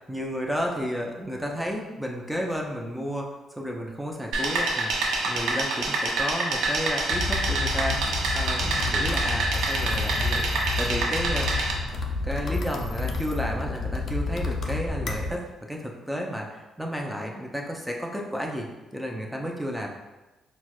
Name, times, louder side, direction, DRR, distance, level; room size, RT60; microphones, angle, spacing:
voice 1, 0.1-4.9 5.2-8.1 8.3-11.5 12.2-18.7 18.9-19.9, equal, ahead, 0 dB, 0.5 m, -32 dB
sound 1, 4.3-11.7, right 2 dB, 85° right, 0.5 m, -27 dB
sound 2, 7.1-15.3, left 3 dB, 55° left, 0.4 m, -30 dB
4.4 x 2.1 x 2.3 m, 1.1 s
cardioid pair, 90°, 0 cm